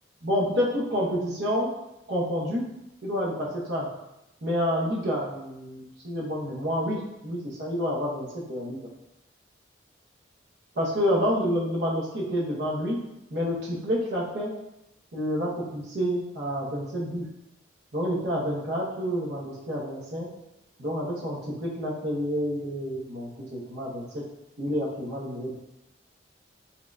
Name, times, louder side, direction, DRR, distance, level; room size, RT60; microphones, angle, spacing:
voice 1, 0.2-1.7 2.1-2.7 3.0-3.9 4.4-8.8 10.8-13.0 13.3-14.5 15.1-17.3 17.9-20.3 20.8-24.2 24.6-25.6, equal, 65° right, -5 dB, 0.8 m, -28 dB
4.2 x 2.5 x 2.2 m, 0.88 s
head